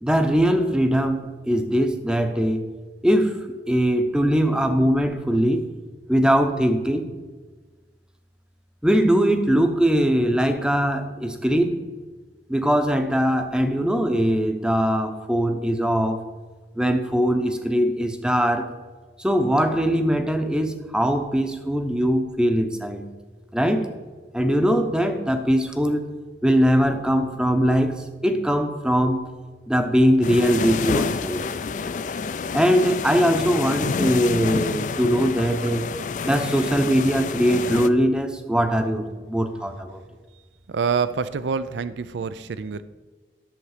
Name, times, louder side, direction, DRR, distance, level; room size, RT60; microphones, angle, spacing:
voice 1, 0.0-2.6 3.0-5.7 6.1-7.1 8.8-11.8 12.5-16.2 16.8-18.7 19.2-23.0 23.5-23.9 24.3-26.1 26.4-29.3 29.7-31.4 32.5-35.9 36.2-40.0, equal, 5° right, 7 dB, 0.7 m, -21 dB
sound 1, 30.2-37.9, left 5 dB, 45° left, 0.4 m, -28 dB
voice 2, 40.7-42.8, right 5 dB, 90° right, 14 dB, 0.4 m, -26 dB
10.5 x 7.1 x 4.9 m, 1.4 s
head